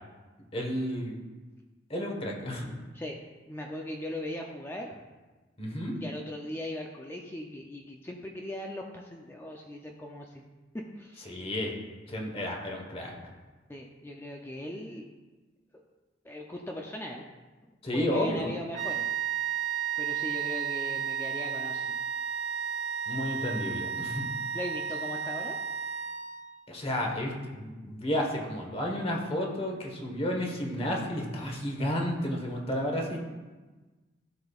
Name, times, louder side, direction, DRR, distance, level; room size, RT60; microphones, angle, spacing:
voice 1, 0.5-1.2 1.9-2.7 5.6-6.0 11.2-11.7 12.1-13.1 17.8-18.5 23.1-24.2 26.7-33.2, equal, 30° left, 0 dB, 1.3 m, -31 dB
voice 2, 3.5-4.9 6.0-10.5 10.7-11.4 13.7-15.1 15.7-15.8 16.2-17.3 17.9-19.1 19.4-19.6 20.0-22.0 24.5-25.6, left 1 dB, 15° left, 0 dB, 0.5 m, -39 dB
sound 1, 18.7-26.6, right 7 dB, 40° right, 0.6 m, -33 dB
14.0 x 5.2 x 2.4 m, 1.3 s
head